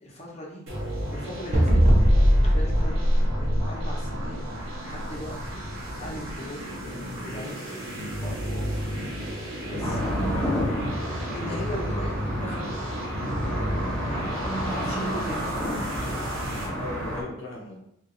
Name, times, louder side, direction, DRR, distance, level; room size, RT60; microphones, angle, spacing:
voice 1, 0.0-0.6 1.1-1.8 2.3-2.9 3.3-5.6 6.0-6.8 7.2-7.8 8.2-8.7 9.7-10.2 11.3-12.6 14.0-15.6, equal, 30° left, -4 dB, 1.0 m, -39 dB
sound 1, 0.7-16.7, equal, 75° right, 1.3 m, -33 dB
sound 2, 1.5-4.2, equal, 35° right, 0.6 m, -19 dB
voice 2, 9.6-10.9 11.4-11.6 16.6-17.9, left 1 dB, 60° left, -2 dB, 0.6 m, -39 dB
sound 3, 9.8-17.2, equal, 5° left, 1.0 m, -30 dB
2.8 x 2.7 x 3.9 m, 0.75 s
head